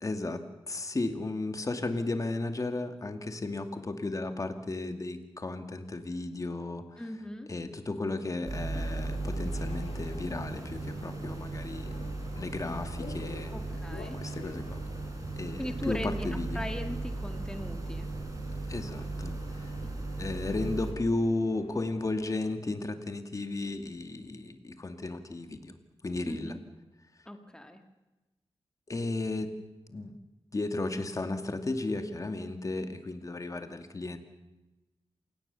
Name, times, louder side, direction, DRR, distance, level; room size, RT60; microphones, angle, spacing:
voice 1, 0.0-7.0 7.5-12.0 12.4-13.6 14.1-14.8 15.4-16.6 18.7-19.7 20.2-25.7 26.0-26.6 28.9-29.5 29.9-30.1 30.5-34.2, left 2 dB, 35° left, 7 dB, 2.3 m, -34 dB
voice 2, 7.0-7.5 13.5-14.2 15.6-16.3 16.5-18.1 19.8-19.9 26.3-26.6 27.3-27.8, left 1 dB, 5° left, 6 dB, 1.9 m, -39 dB
sound 1, 8.5-20.9, right 3 dB, 35° right, 4.5 m, -36 dB
Subway metro underground, 8.7-22.6, left 5 dB, 80° left, 2.1 m, -48 dB
27.5 x 18.5 x 7.0 m, 1.1 s
wide cardioid pair, 115°, 10 cm